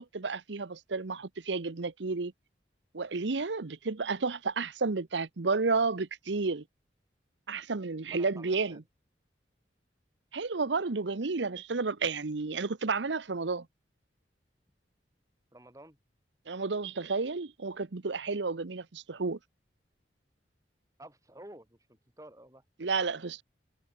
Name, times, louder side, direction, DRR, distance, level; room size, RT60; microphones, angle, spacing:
voice 1, 0.0-2.3 2.9-6.6 7.5-8.8 10.3-13.7 16.5-19.4 22.8-23.4, right 4 dB, 85° right, 0.9 m, -31 dB
voice 2, 8.1-8.8 15.5-16.0 21.0-22.6, right 1 dB, 20° right, 5.6 m, -51 dB
head